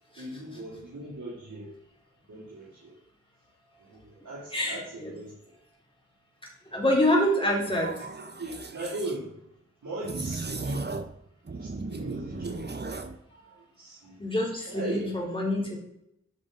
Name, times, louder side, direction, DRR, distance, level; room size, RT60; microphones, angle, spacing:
voice 1, 0.2-1.7 2.3-2.9 3.8-5.3 8.4-9.3 9.8-11.0 11.5-12.7 13.5-14.2 14.7-15.1, right 2 dB, 75° right, -7 dB, 2.8 m, -38 dB
voice 2, 4.5-5.1 6.7-7.9 14.2-15.8, left 1 dB, 15° left, -3 dB, 3.6 m, -26 dB
sound 1, 7.7-9.2 10.0-11.2 11.5-13.2, right 3 dB, 35° right, 0.9 m, -36 dB
11.0 x 6.0 x 3.8 m, 0.76 s
cardioid pair, 55°, 29 cm